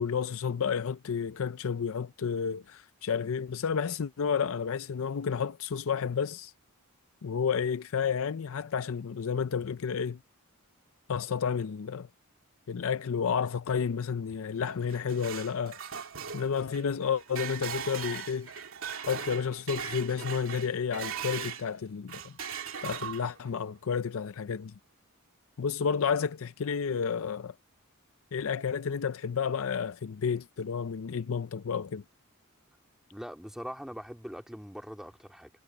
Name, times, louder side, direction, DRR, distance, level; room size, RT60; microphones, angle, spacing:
voice 1, 0.0-6.5 7.2-10.2 11.1-12.1 12.7-15.8 16.3-18.5 19.1-22.4 22.8-24.7 25.6-27.5 28.3-32.0, left 6 dB, 65° left, 0.5 m, -31 dB
sound 1, 14.7-21.7 22.1-23.5, right 7 dB, 65° right, 2.6 m, -39 dB
voice 2, 33.1-35.5, equal, ahead, 2.2 m, -42 dB
head